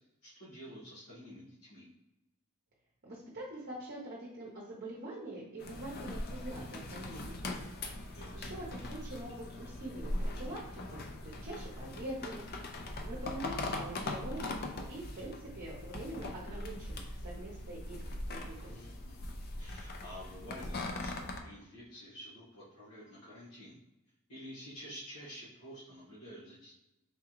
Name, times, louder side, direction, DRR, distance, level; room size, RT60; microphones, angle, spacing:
voice 1, 0.0-1.9 8.1-8.6 18.7-19.2 19.6-23.8 24.3-26.7, equal, 90° left, -9 dB, 1.3 m, -50 dB
voice 2, 3.0-7.6 8.0-12.4 13.0-14.4 14.9-18.8, right 1 dB, 45° right, -4 dB, 0.7 m, -44 dB
sound 1, 5.6-21.4, left 2 dB, 45° left, 0.5 m, -41 dB
3.7 x 3.4 x 3.0 m, 0.96 s
head